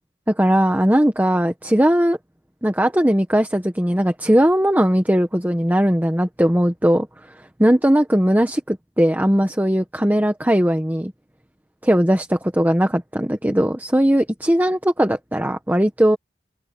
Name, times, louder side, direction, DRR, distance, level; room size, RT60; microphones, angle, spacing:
voice 1, 0.3-2.2 2.6-7.1 7.6-11.1 11.8-16.2, equal, 10° right, 1.3 m, -18 dB
open air
head